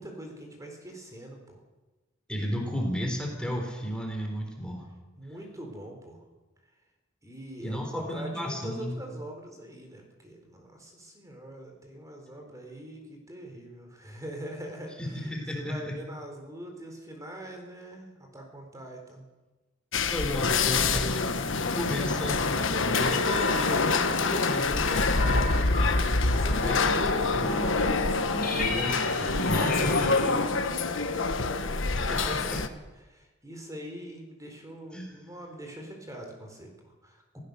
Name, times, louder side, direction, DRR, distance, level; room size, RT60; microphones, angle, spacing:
voice 1, 0.0-1.6 5.2-6.2 7.2-15.3 15.5-19.2 20.7-21.7 21.9-22.3 26.4-28.5 29.5-32.6 33.1-37.4, right 1 dB, 15° right, 2 dB, 4.0 m, -42 dB
voice 2, 2.3-4.9 7.6-9.0 15.0-16.0 20.1-26.1 26.4-27.5 28.6-30.1 31.9-32.6 34.9-35.2, equal, 5° left, 1 dB, 3.9 m, -34 dB
sound 1, 19.9-32.7, left 3 dB, 70° left, 1.4 m, -26 dB
sound 2, 22.9-31.9, left 3 dB, 50° left, 4.9 m, -34 dB
26.5 x 16.0 x 6.9 m, 1.1 s
head